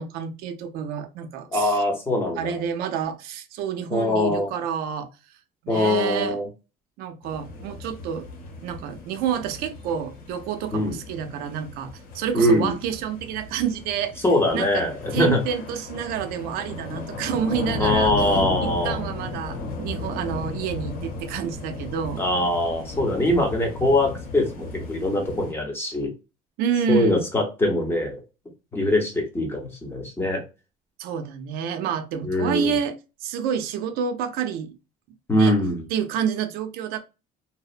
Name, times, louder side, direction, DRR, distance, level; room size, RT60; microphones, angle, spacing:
voice 1, 0.0-1.8 2.4-5.1 5.6-6.4 7.0-8.3 8.6-14.2 14.5-14.8 15.1-22.3 26.6-27.2 31.0-34.7 35.3-35.6 35.9-37.0, right 8 dB, 75° right, 0.5 m, -29 dB
voice 2, 1.5-2.6 3.9-4.5 5.7-6.5 10.7-11.0 12.3-12.8 14.2-15.5 17.8-19.0 22.2-26.1 26.7-28.2 28.7-30.4 32.2-32.8 35.3-35.8, left 1 dB, 15° left, 0.8 m, -23 dB
sound 1, 7.2-25.5, left 3 dB, 90° left, 0.9 m, -35 dB
2.8 x 2.0 x 2.4 m
cardioid pair, 145°, 16 cm